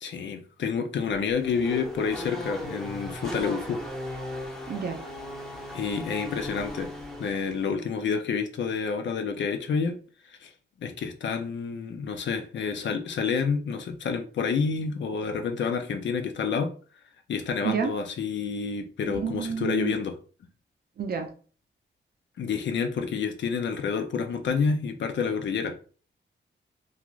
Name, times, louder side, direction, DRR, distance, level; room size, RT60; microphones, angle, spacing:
voice 1, 0.0-3.8 5.7-6.9 7.2-10.0 10.4-10.5 10.8-16.7 17.3-20.1 22.4-25.7, left 5 dB, 65° left, 6 dB, 0.5 m, -29 dB
Race car auto racing / Accelerating revving vroom, 1.0-7.7, left 1 dB, ahead, 0.5 m, -37 dB
voice 2, 4.7-5.0 17.6-17.9 19.1-19.9 21.0-21.3, right 6 dB, 50° right, 5 dB, 0.5 m, -29 dB
2.4 x 2.4 x 3.0 m, 0.40 s
wide cardioid pair, 160°, 20 cm